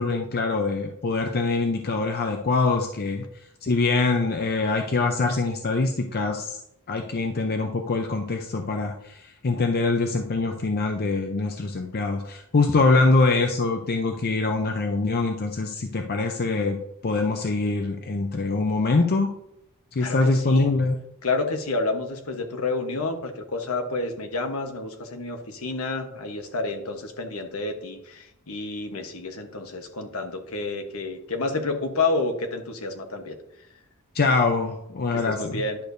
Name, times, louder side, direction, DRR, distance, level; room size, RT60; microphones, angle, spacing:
voice 1, 0.0-3.2 3.6-6.6 6.9-16.8 17.0-19.3 19.9-20.9 34.1-35.6, left 3 dB, 45° left, 4 dB, 0.6 m, -24 dB
voice 2, 20.0-20.7 21.2-33.4 35.1-35.8, left 3 dB, 70° left, 5 dB, 1.1 m, -29 dB
10.5 x 6.5 x 2.6 m, 0.77 s
head